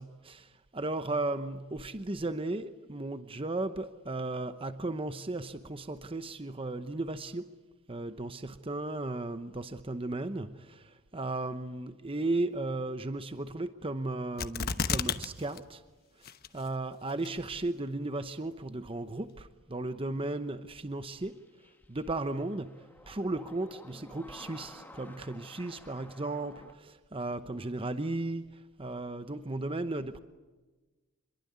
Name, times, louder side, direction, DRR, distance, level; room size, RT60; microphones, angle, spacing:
voice 1, 0.0-7.5 7.9-15.8 16.2-21.4 21.9-30.2, right 2 dB, 25° right, 10 dB, 0.9 m, -35 dB
sound 1, 14.4-15.3 15.6-15.7 16.2-16.7 17.2-17.3, left 5 dB, 50° left, 1.1 m, -30 dB
sound 2, 21.1-26.7, left 1 dB, 10° left, 1.7 m, -52 dB
27.5 x 22.5 x 9.5 m, 1.2 s
head